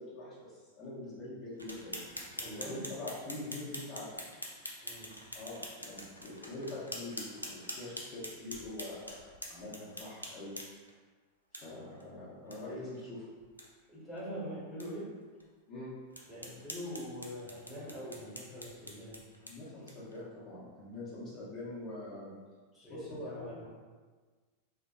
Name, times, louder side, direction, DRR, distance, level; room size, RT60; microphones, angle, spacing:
voice 1, 0.0-2.0 2.4-4.2 5.3-10.5 11.5-13.3 15.7-15.9 19.4-22.3 22.9-23.7, left 2 dB, 35° left, -8 dB, 1.1 m, -44 dB
sound 1, 1.6-10.9 11.5-11.6 12.0-12.1 12.5-12.6 12.9-13.0 13.4-13.7 14.2-14.3 14.8-14.9 15.4-15.5 16.1-20.2, left 1 dB, 85° left, 0.4 m, -45 dB
voice 2, 2.3-2.8 4.8-5.1 13.9-15.1 16.3-19.2 22.7-23.7, equal, 10° left, -9 dB, 1.1 m, -43 dB
4.7 x 2.0 x 2.5 m, 1.4 s
figure-of-eight pair, 90°, 0 cm